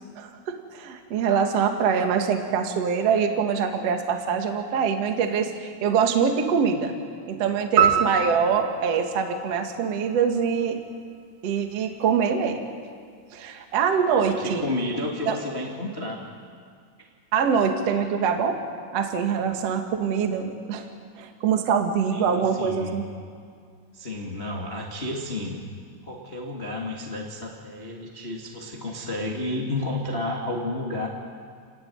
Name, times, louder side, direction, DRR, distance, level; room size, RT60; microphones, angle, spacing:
voice 1, 0.2-6.9 7.3-10.8 11.4-12.6 13.3-14.6 15.3-15.4 17.3-18.6 18.9-20.8 21.2-23.0, right 6 dB, 70° right, 4 dB, 1.5 m, -24 dB
sound 1, 7.8-10.2, right 7 dB, 45° right, 2.9 m, -24 dB
voice 2, 14.0-16.2 17.0-17.1 22.1-23.0 23.9-25.6 26.0-31.1, left 1 dB, 85° left, -2 dB, 0.5 m, -31 dB
29.0 x 16.5 x 9.7 m, 2.1 s
omnidirectional pair, 6.0 m